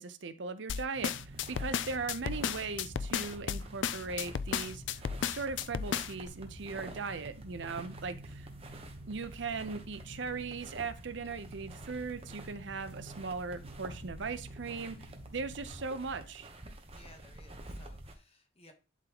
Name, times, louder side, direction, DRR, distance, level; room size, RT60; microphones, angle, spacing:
voice 1, 0.0-8.5 9.1-16.5, right 4 dB, 65° right, 11 dB, 0.6 m, -39 dB
sound 1, 0.7-6.3, left 7 dB, 65° left, 0.3 m, -34 dB
sound 2, 0.9-15.9, right 1 dB, 45° right, 1.4 m, -49 dB
sound 3, 1.2-18.1, right 2 dB, 30° right, 1.0 m, -51 dB
voice 2, 14.6-15.0 16.9-18.7, left 2 dB, 30° left, 5 dB, 1.1 m, -59 dB
11.0 x 3.9 x 2.9 m, 0.33 s
head